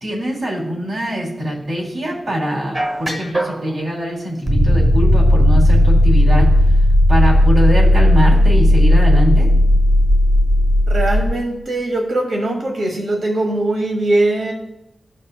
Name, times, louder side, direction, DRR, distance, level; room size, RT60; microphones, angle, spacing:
voice 1, 0.0-9.5, equal, 70° right, -3 dB, 3.1 m, -23 dB
sound 1, 2.7-3.7 4.5-11.3, left 1 dB, 35° right, 1.0 m, -13 dB
voice 2, 10.9-14.5, right 2 dB, 85° right, 1 dB, 1.4 m, -20 dB
16.0 x 5.4 x 2.3 m, 0.86 s
wide cardioid pair, 130°, 0 cm